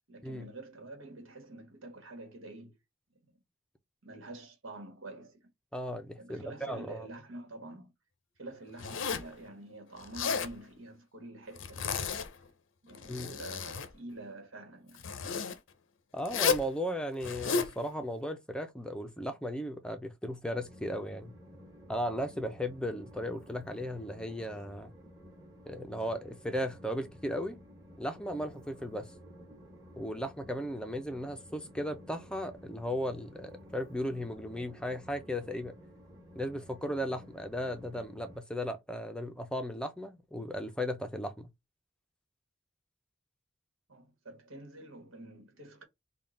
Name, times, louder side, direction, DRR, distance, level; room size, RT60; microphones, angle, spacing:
voice 1, 0.1-2.8 3.2-3.3 4.0-5.5 6.2-7.9 8.4-12.1 12.8-15.0 43.9-45.8, right 2 dB, 80° right, 1.3 m, -47 dB
voice 2, 5.7-7.1 13.1-13.3 16.1-21.3 21.9-24.9 25.7-27.6 28.0-29.1 30.0-35.7 36.3-41.5, equal, 5° left, 0.6 m, -36 dB
Zipper (clothing), 8.8-9.3 10.0-10.5 11.6-12.4 12.9-13.9 15.0-15.6 16.3-16.7 17.2-17.7, left 5 dB, 70° left, 0.6 m, -32 dB
Train, 20.5-38.4, equal, 20° right, 1.4 m, -53 dB
3.6 x 2.3 x 3.8 m
head